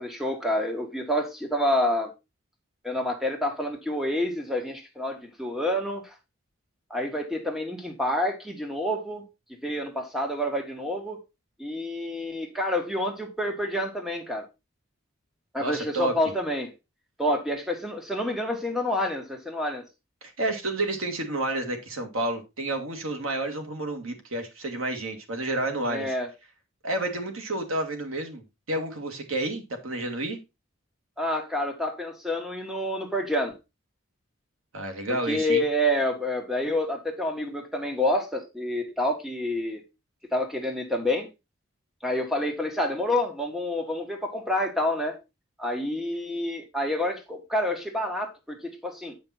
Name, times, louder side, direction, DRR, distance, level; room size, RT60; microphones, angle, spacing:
voice 1, 0.0-2.1 2.8-6.1 6.9-9.2 9.6-11.2 11.6-14.5 15.5-16.7 17.2-19.8 25.9-26.3 31.2-33.6 35.1-39.8 40.3-41.3 42.0-45.2 45.6-49.2, left 1 dB, ahead, 1.7 m, -28 dB
voice 2, 15.6-16.1 20.2-26.1 26.8-28.4 28.7-30.4 34.7-35.6, right 2 dB, 90° right, 2.0 m, -30 dB
8.9 x 5.2 x 4.2 m
head